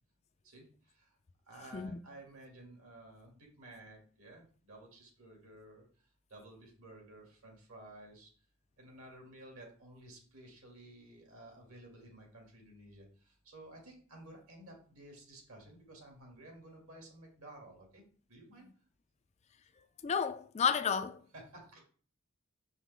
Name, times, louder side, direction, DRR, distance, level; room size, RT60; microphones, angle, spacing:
voice 1, 0.4-1.2 1.4-8.3 8.8-18.7 21.3-21.8, right 1 dB, 70° right, 2.6 m, -54 dB
voice 2, 20.0-21.2, left 7 dB, 30° left, 0.3 m, -31 dB
6.8 x 5.5 x 3.6 m
head